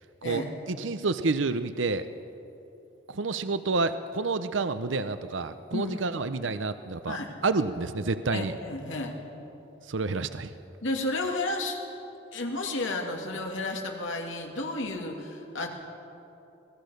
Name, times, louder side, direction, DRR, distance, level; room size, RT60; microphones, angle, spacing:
voice 1, 0.2-2.1 3.1-7.2 7.4-8.5 9.9-10.5, right 3 dB, 80° right, 11 dB, 0.8 m, -29 dB
voice 2, 8.3-9.2 10.8-11.8 12.3-15.7, left 2 dB, 90° left, 1 dB, 2.8 m, -32 dB
26.5 x 19.0 x 6.6 m, 3.0 s
head